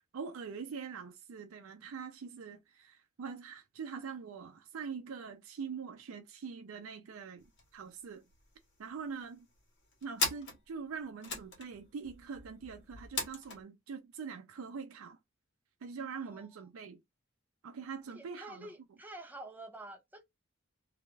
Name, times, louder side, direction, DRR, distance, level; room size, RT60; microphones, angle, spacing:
voice 1, 0.0-7.5 7.7-8.2 8.8-9.5 10.0-15.2 15.8-17.0 17.6-18.7, right 5 dB, 85° right, 0.4 m, -43 dB
sound 1, 7.4-7.7 8.0-8.1 8.3-9.0 9.5-13.6, left 3 dB, 60° left, 0.9 m, -39 dB
voice 2, 18.1-20.2, right 1 dB, 10° right, 0.5 m, -48 dB
2.3 x 2.3 x 3.1 m
head